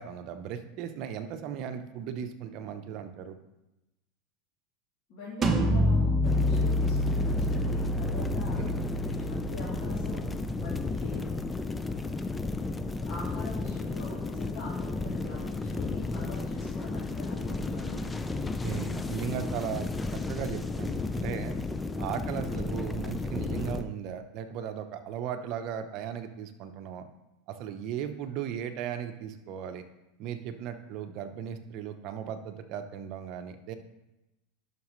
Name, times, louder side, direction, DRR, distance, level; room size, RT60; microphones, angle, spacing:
voice 1, 0.0-3.4 8.4-8.9 18.3-19.9 20.3-21.5 22.0-27.1 27.5-29.9 30.2-33.7, right 8 dB, 50° right, 8 dB, 0.8 m, -37 dB
voice 2, 5.1-8.6 9.3-11.2 11.9-12.0 12.9-18.0, left 2 dB, 50° left, -9 dB, 3.1 m, -43 dB
sound 1, 5.4-11.1, equal, 25° right, 0.9 m, -28 dB
sound 2, 6.2-23.8, left 3 dB, 10° left, 0.5 m, -33 dB
11.0 x 6.0 x 3.2 m, 0.98 s
supercardioid pair, 125°, 0 cm